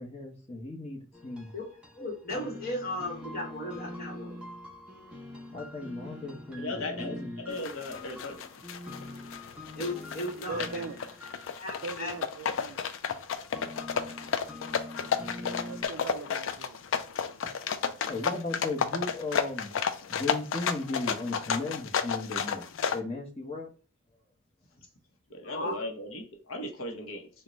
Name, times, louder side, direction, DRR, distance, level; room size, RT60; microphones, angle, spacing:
voice 1, 0.0-1.5 5.5-7.5 17.8-19.8 20.1-23.7, left 2 dB, 30° left, 0.9 m, -36 dB
sound 1, 1.1-15.9, left 1 dB, 5° right, 0.6 m, -44 dB
voice 2, 1.9-4.4 9.8-10.8 11.6-12.1 25.4-25.7, left 1 dB, 45° left, 1.3 m, -36 dB
voice 3, 6.6-7.2 7.5-8.4 25.3-27.3, left 2 dB, 85° left, 0.8 m, -37 dB
sound 2, 7.5-23.0, left 7 dB, 65° left, 0.4 m, -32 dB
voice 4, 10.5-11.0 11.8-12.8 15.6-16.8 25.6-25.8, right 4 dB, 80° right, 0.4 m, -39 dB
3.8 x 2.2 x 3.0 m
head